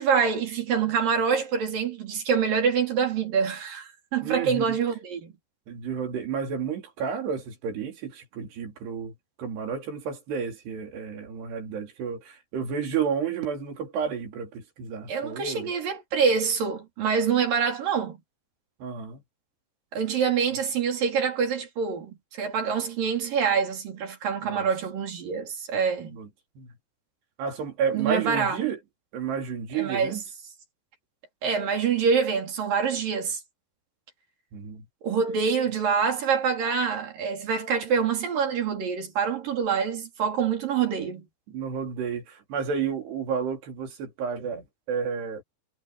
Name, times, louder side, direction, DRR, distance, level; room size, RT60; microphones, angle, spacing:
voice 1, 0.0-5.3 15.1-18.2 19.9-26.2 27.9-28.6 29.7-30.2 31.4-33.4 35.0-41.3, right 6 dB, 60° right, 5.2 m, -26 dB
voice 2, 4.2-4.8 5.7-15.7 18.8-19.2 24.4-24.7 26.0-26.3 26.6-26.7 27.4-28.8 29.1-30.2 34.5-34.9 41.5-45.4, right 6 dB, 85° right, 5.5 m, -31 dB
omnidirectional pair, 4.7 m